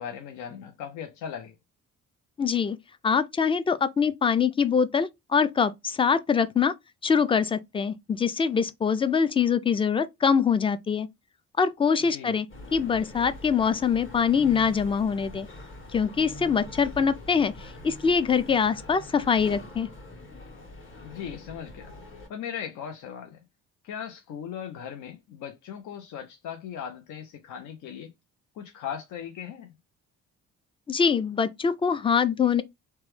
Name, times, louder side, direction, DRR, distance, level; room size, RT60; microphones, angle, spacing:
voice 1, 0.0-1.5 12.1-12.3 21.0-21.9 22.3-23.4 23.8-28.1 28.5-29.7, left 8 dB, 75° left, 0.6 m, -38 dB
voice 2, 2.4-2.8 3.0-6.7 7.0-11.1 11.6-12.5 12.7-15.5 15.9-17.5 17.8-19.9 30.9-32.6, left 6 dB, 20° left, 0.3 m, -24 dB
sound 1, 12.5-22.3, left 1 dB, 40° left, 1.6 m, -44 dB
3.0 x 2.2 x 3.1 m
cardioid pair, 90°, 30 cm